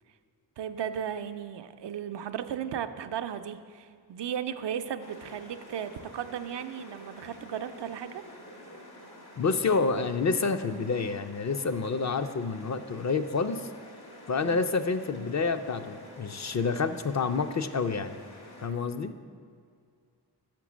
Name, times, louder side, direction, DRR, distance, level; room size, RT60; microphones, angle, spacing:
voice 1, 0.6-8.2 14.4-14.6, right 9 dB, 80° right, 9 dB, 0.5 m, -35 dB
sound 1, 5.0-18.7, left 1 dB, 65° left, 1.8 m, -49 dB
voice 2, 9.4-13.7 14.3-18.1 18.6-19.1, left 4 dB, 45° left, 9 dB, 0.4 m, -28 dB
6.5 x 6.0 x 6.1 m, 2.2 s
cardioid pair, 60°, 42 cm